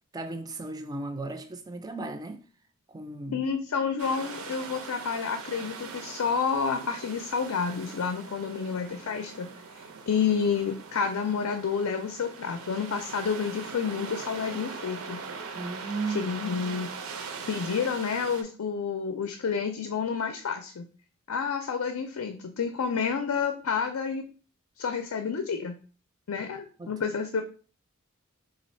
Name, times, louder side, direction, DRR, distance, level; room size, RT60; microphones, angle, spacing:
voice 1, 0.1-2.4 2.9-3.4 15.5-16.2 26.8-26.9, right 3 dB, 20° right, 0.3 m, -35 dB
voice 2, 3.3-15.2 16.1-16.9 17.5-20.9 21.3-24.3 24.8-25.8 26.3-27.4, left 6 dB, 85° left, 0.5 m, -29 dB
sound 1, 4.0-18.4, right 5 dB, 80° right, 0.5 m, -41 dB
3.3 x 2.5 x 4.2 m
head